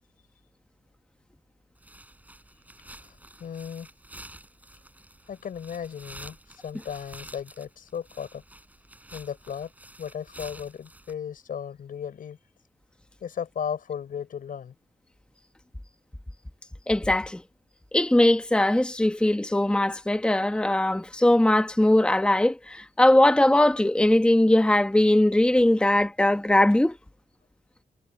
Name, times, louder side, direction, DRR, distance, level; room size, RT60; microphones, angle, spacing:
sound 1, 1.8-11.1, right 1 dB, 10° right, 6.1 m, -49 dB
voice 1, 3.0-3.9 5.3-8.4 9.1-9.7 10.0-12.4 13.2-14.7, left 8 dB, 75° left, 5.3 m, -36 dB
voice 2, 16.9-17.4 17.9-27.0, left 1 dB, 5° left, 1.1 m, -20 dB
wide cardioid pair, 115°, 14 cm